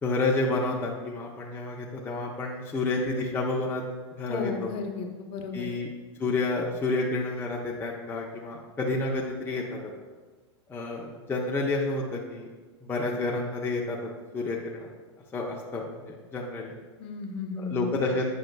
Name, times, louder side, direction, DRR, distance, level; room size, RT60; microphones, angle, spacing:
voice 1, 0.0-3.8 4.1-4.7 5.5-5.9 6.2-9.9 10.7-12.5 12.8-14.0 14.3-14.9 15.3-16.7 17.6-18.3, left 3 dB, 15° left, -3 dB, 0.7 m, -30 dB
voice 2, 4.3-5.7 17.0-17.9, left 4 dB, 40° left, 2 dB, 0.9 m, -34 dB
8.8 x 5.3 x 2.2 m, 1.4 s
hypercardioid pair, 110°, 15 cm